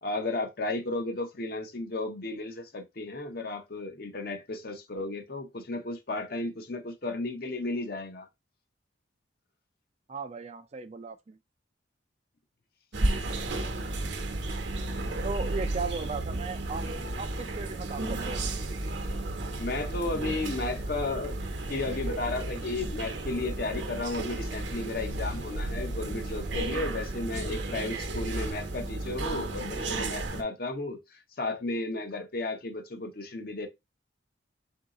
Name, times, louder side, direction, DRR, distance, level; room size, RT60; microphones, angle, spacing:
voice 1, 0.0-8.3 19.5-21.4 21.7-33.7, left 2 dB, 50° left, 0.7 m, -34 dB
voice 2, 10.1-11.4 15.2-16.9 17.2-18.5, right 4 dB, 35° right, 0.4 m, -36 dB
sound 1, 12.9-30.4, right 2 dB, 70° right, 0.9 m, -33 dB
3.9 x 2.7 x 3.6 m
head